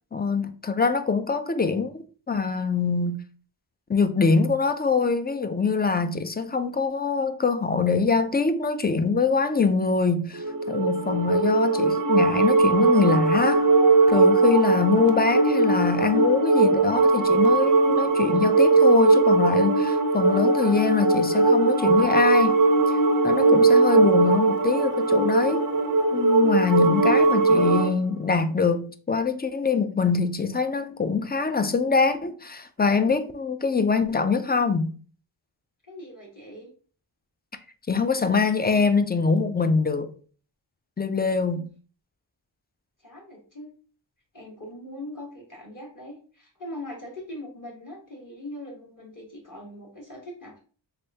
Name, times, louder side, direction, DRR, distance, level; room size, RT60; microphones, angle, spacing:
voice 1, 0.1-1.9 2.3-3.2 3.9-13.7 14.1-22.6 22.9-23.0 23.2-25.7 26.1-34.9 37.9-40.1 41.0-41.6, left 4 dB, 25° left, 0.3 m, -24 dB
sound 1, 10.3-27.9, right 3 dB, 40° right, 0.5 m, -20 dB
voice 2, 35.9-36.7 41.5-41.7 43.0-43.7 44.3-50.6, left 1 dB, 40° left, 1.6 m, -41 dB
3.4 x 3.4 x 2.7 m
wide cardioid pair, 50°, 48 cm